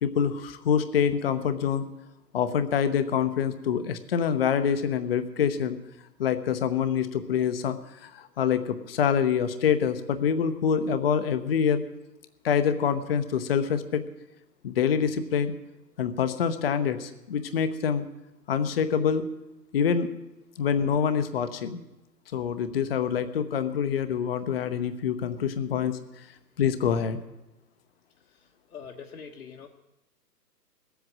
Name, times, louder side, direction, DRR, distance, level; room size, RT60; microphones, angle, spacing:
voice 1, 0.0-1.8 2.3-5.8 6.2-11.8 12.4-14.0 14.6-15.5 16.0-18.0 18.5-19.3 19.7-20.1 20.6-21.8 22.3-26.0 26.6-27.2, left 7 dB, 35° left, 11 dB, 0.9 m, -26 dB
voice 2, 28.3-29.7, left 6 dB, 60° left, 1 dB, 1.4 m, -44 dB
18.5 x 8.1 x 7.4 m, 0.96 s
figure-of-eight pair, 135°, 49 cm